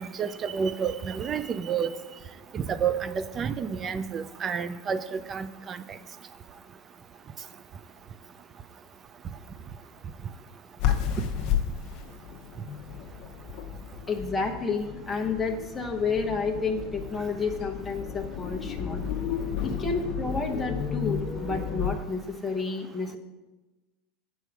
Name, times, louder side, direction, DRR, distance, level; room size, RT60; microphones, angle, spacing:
voice 1, 0.0-1.9 2.5-5.8, right 7 dB, 30° right, 13 dB, 0.4 m, -30 dB
sound 1, 10.8-22.0, left 8 dB, 55° left, 0.7 m, -32 dB
voice 2, 14.1-19.0 19.6-23.2, left 4 dB, 10° left, 1 dB, 0.9 m, -30 dB
8.3 x 4.6 x 6.0 m, 1.2 s
supercardioid pair, 130°, 0 cm